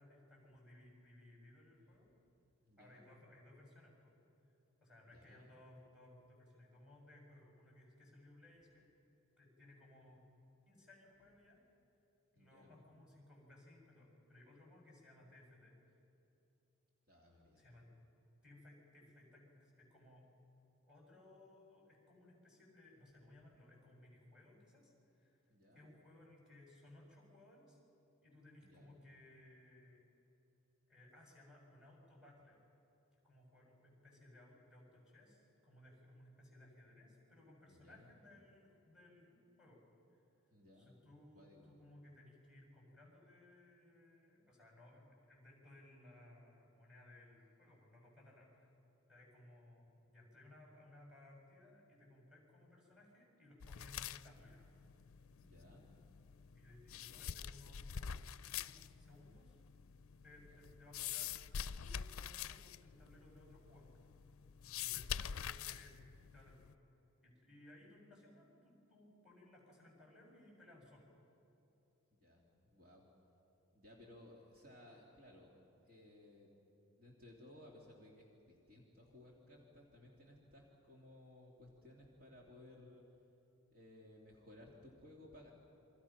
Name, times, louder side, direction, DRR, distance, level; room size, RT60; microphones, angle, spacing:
voice 1, 0.0-2.1 2.8-4.1 4.8-8.9 9.4-10.3 10.7-11.6 12.3-15.7 17.6-17.9 18.4-20.3 20.9-25.4 25.7-27.8 28.2-30.0 30.9-32.6 33.1-39.8 40.1-40.2 40.8-48.7 49.1-54.7 56.6-59.6 60.2-61.4 61.7-64.0 64.6-66.0 66.3-66.8 67.2-71.1, left 1 dB, 5° right, -2 dB, 7.0 m, -61 dB
voice 2, 2.6-3.1 5.0-5.6 12.3-12.7 17.1-17.6 25.5-25.8 28.6-28.9 37.7-38.1 40.5-40.9 41.3-41.7 55.4-55.9 57.1-57.3 60.5-60.6 64.9-65.2 72.1-73.0 73.7-75.5 75.9-76.5 77.0-83.0 83.7-85.5, left 1 dB, 45° right, -2 dB, 2.9 m, -60 dB
sound 1, 53.6-66.7, left 8 dB, 75° left, 0.5 m, -46 dB
28.5 x 24.5 x 5.9 m, 2.9 s
head